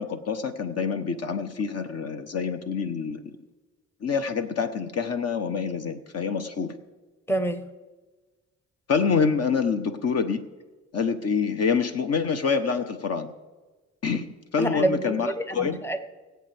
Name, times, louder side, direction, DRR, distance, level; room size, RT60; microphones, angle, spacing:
voice 1, 0.0-3.2 4.0-6.8 8.9-10.5 10.9-13.3 14.0-14.3 14.5-15.8, left 5 dB, 55° left, 9 dB, 1.0 m, -26 dB
voice 2, 7.3-7.7 14.6-16.1, right 1 dB, 10° left, 9 dB, 0.9 m, -27 dB
22.5 x 8.0 x 3.4 m, 1.2 s
cardioid pair, 90°, 30 cm